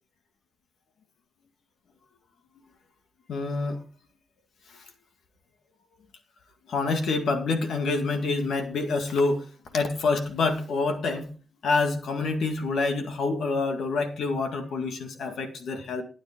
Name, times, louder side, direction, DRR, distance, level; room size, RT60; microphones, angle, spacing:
voice 1, 3.3-3.8 4.7-4.8 6.7-9.5 9.7-11.3 11.6-16.0, left 3 dB, 90° left, 5 dB, 1.9 m, -27 dB
13.5 x 9.9 x 3.7 m, 0.37 s
cardioid pair, 50°, 0 cm